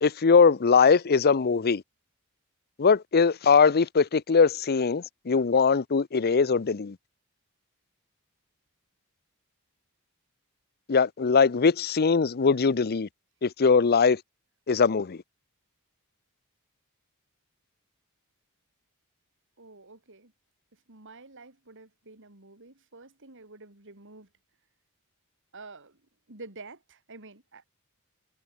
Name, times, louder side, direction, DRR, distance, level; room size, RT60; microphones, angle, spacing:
voice 1, 0.0-1.8 2.8-7.0 10.9-13.1 13.4-14.2 14.7-15.2, left 5 dB, 45° left, 0.6 m, -21 dB
voice 2, 19.6-20.3 20.9-24.3 25.5-26.0 26.3-27.7, right 3 dB, 60° right, 4.0 m, -48 dB
head